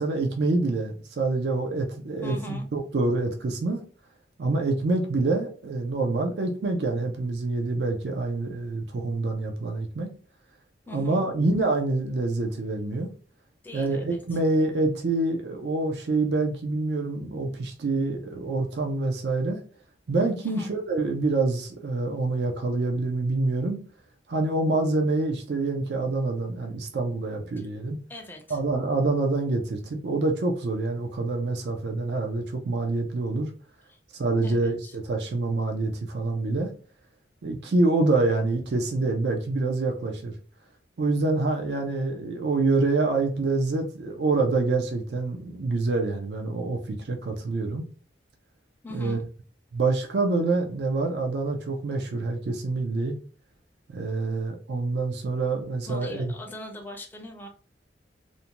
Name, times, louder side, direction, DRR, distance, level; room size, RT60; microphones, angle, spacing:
voice 1, 0.0-3.8 4.4-10.1 10.9-13.1 13.7-19.6 20.1-23.8 24.3-28.0 28.5-33.5 34.1-36.7 37.4-40.3 41.0-47.9 48.9-49.2 49.7-53.2 53.9-56.3, right 3 dB, 65° right, 0.4 m, -26 dB
voice 2, 2.2-2.7 10.9-11.3 13.6-14.2 20.4-20.7 27.6-27.7 28.1-28.6 33.9-34.0 34.4-35.0 48.8-49.2 55.9-57.5, left 1 dB, 10° left, 0.4 m, -41 dB
2.6 x 2.1 x 2.8 m
head